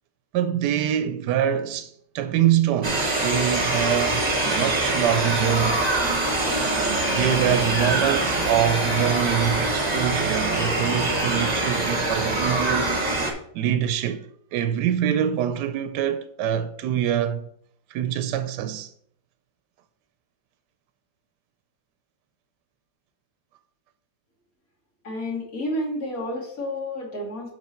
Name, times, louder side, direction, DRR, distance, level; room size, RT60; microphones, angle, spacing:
voice 1, 0.3-5.8 7.2-12.9 13.5-14.3 14.5-17.5 17.9-18.9, right 10 dB, 85° right, 1.2 m, -25 dB
sound 1, 2.8-13.3, right 2 dB, 25° right, 1.3 m, -24 dB
voice 2, 25.0-27.5, left 1 dB, 55° left, 2.6 m, -30 dB
7.2 x 5.7 x 4.3 m
omnidirectional pair, 1.8 m